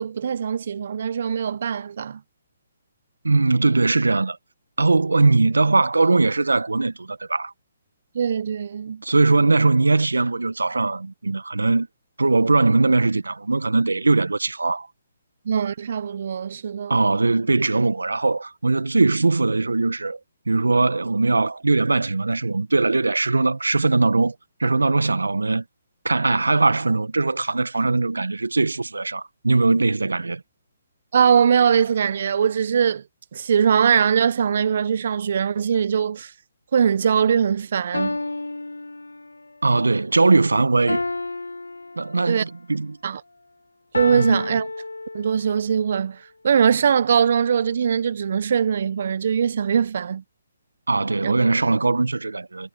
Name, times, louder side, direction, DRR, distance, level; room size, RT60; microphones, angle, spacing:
voice 1, 0.0-2.2 8.1-9.0 15.4-17.0 31.1-33.0 33.3-36.3 36.7-38.2 42.3-42.4 43.0-43.2 43.9-44.7 45.1-50.2 51.2-51.3, right 7 dB, 55° right, 1.0 m, -21 dB
voice 2, 3.2-4.4 4.8-7.5 9.0-11.9 12.2-14.9 16.9-20.2 20.5-24.4 24.6-25.6 26.0-30.4 39.6-41.0 42.0-43.0 44.2-44.4 50.9-52.7, right 3 dB, 80° right, 1.6 m, -20 dB
sound 1, 37.9-39.5 40.9-42.5 43.9-45.6, left 2 dB, 85° left, 2.3 m, -30 dB
figure-of-eight pair, 135°, 0 cm